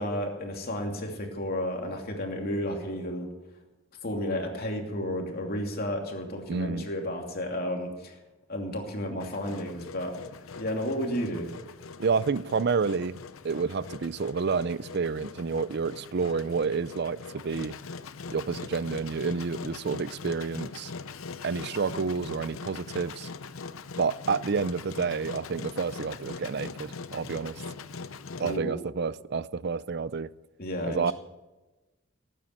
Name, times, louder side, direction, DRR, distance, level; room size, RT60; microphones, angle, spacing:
voice 1, 0.0-3.3 4.0-8.2 8.5-10.2 10.6-11.5 28.4-28.8 30.6-31.0, left 1 dB, 50° left, 2.7 m, -32 dB
voice 2, 6.5-6.9 12.0-13.2 13.4-17.8 18.3-20.9 21.4-23.3 24.0-27.6 28.4-30.3 30.9-31.1, right 5 dB, 55° right, 0.5 m, -29 dB
Engine, 9.2-28.6, left 4 dB, 85° left, 0.7 m, -42 dB
18.5 x 9.3 x 7.7 m
head